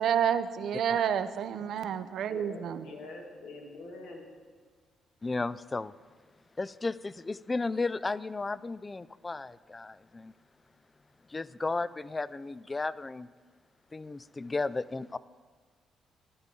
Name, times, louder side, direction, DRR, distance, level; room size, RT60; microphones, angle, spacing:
voice 1, 0.0-2.9, right 8 dB, 70° right, 12 dB, 0.5 m, -29 dB
voice 2, 2.3-4.3, left 2 dB, 85° left, 0 dB, 2.0 m, -45 dB
voice 3, 5.2-5.9 6.6-10.3 11.3-13.3 13.9-15.2, left 3 dB, 25° left, 17 dB, 0.3 m, -34 dB
12.5 x 10.5 x 3.8 m, 1.5 s
cardioid pair, 90°, 0 cm